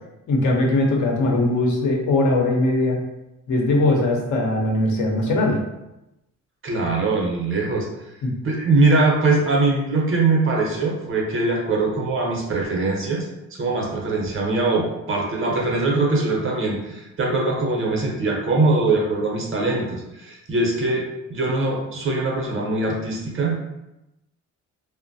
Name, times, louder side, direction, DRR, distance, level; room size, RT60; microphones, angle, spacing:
voice 1, 0.3-3.0 3.5-5.6 8.2-8.3, left 2 dB, 75° left, 0 dB, 0.8 m, -20 dB
voice 2, 6.6-7.9 8.4-21.0 21.3-23.5, right 3 dB, 45° right, -1 dB, 0.8 m, -22 dB
3.0 x 2.1 x 2.6 m, 0.92 s
cardioid pair, 90°, 30 cm